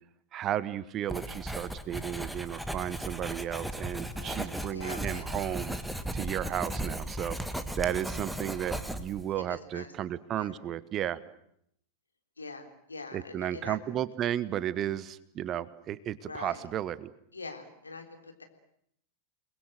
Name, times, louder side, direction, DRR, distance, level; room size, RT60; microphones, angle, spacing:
voice 1, 0.3-5.8 6.1-7.4 7.8-11.2 13.1-17.1, right 11 dB, 30° right, 18 dB, 1.2 m, -33 dB
Writing, 1.1-9.3, right 1 dB, ahead, 1.6 m, -36 dB
voice 2, 4.1-5.3 9.4-9.9 10.4-10.6 12.4-14.0 16.2-16.7 17.3-18.4, left 3 dB, 80° left, 4 dB, 3.7 m, -44 dB
29.5 x 21.0 x 7.8 m, 0.72 s
figure-of-eight pair, 90°, 0 cm